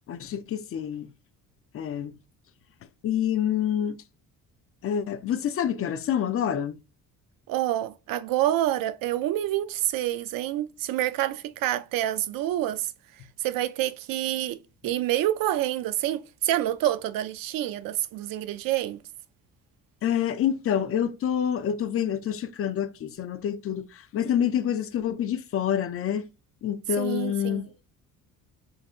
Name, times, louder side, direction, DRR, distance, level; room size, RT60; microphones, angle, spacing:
voice 1, 0.1-1.1 1.7-2.1 3.0-4.0 4.8-6.8 20.0-26.3 26.6-27.7, left 9 dB, 40° left, 0.5 m, -27 dB
voice 2, 7.5-12.9 13.4-14.6 14.8-19.0 27.0-27.7, right 13 dB, 75° right, 0.5 m, -27 dB
4.9 x 3.9 x 2.4 m
cardioid pair, 150°, 34 cm